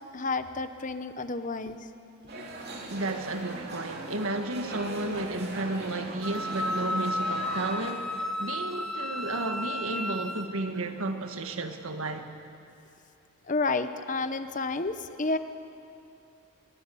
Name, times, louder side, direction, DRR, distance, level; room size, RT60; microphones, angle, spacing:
voice 1, 0.0-1.9 2.3-2.4 13.5-15.4, left 3 dB, 35° left, 0.8 m, -30 dB
sound 1, 2.3-7.9, right 2 dB, 45° right, 3.0 m, -39 dB
voice 2, 2.9-12.3, right 2 dB, 70° right, 1.7 m, -33 dB
Wind instrument woodwind instrument, 6.2-10.5, left 1 dB, ahead, 1.1 m, -33 dB
25.0 x 22.0 x 7.0 m
head